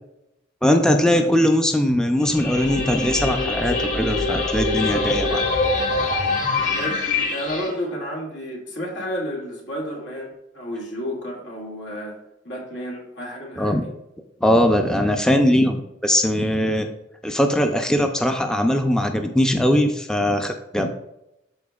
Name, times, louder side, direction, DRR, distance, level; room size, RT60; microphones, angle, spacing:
voice 1, 0.6-5.4 13.6-13.9 14.4-16.9 17.2-20.9, left 1 dB, 5° left, 4 dB, 0.5 m, -20 dB
sound 1, 2.2-7.7, left 3 dB, 40° left, 1.4 m, -24 dB
voice 2, 6.7-12.2 12.4-13.9, equal, 80° left, -2 dB, 2.2 m, -31 dB
12.5 x 4.3 x 2.3 m, 0.86 s
head